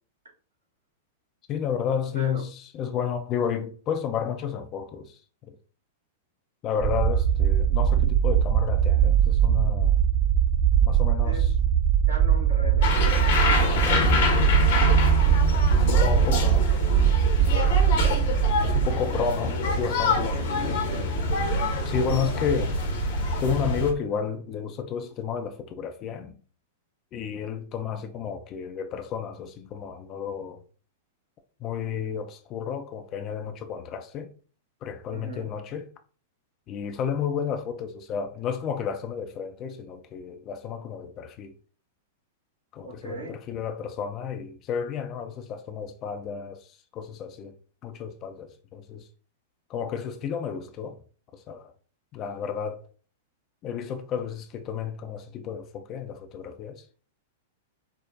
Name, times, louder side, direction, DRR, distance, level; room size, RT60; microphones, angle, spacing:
voice 1, 1.5-5.2 5.5-5.6 6.6-10.0 10.8-11.5 13.6-14.3 15.7-16.7 18.6-20.3 21.7-22.8 23.4-26.4 27.1-30.6 31.6-34.3 34.8-35.9 36.7-41.5 42.7-46.7 46.9-47.5 47.8-49.1 49.7-51.0 51.3-51.7 52.1-52.8 53.6-56.8, left 7 dB, 35° left, 0.5 m, -32 dB
sound 1, 6.8-18.9, right 9 dB, 20° right, 0.8 m, -21 dB
voice 2, 12.1-13.0 17.8-18.2 20.3-20.6 20.9-21.1 35.1-35.5 42.8-43.3, equal, 70° right, 1.6 m, -38 dB
sound 2, 12.8-23.9, left 3 dB, 55° left, 0.9 m, -26 dB
4.5 x 2.0 x 2.6 m
figure-of-eight pair, 100°, 0 cm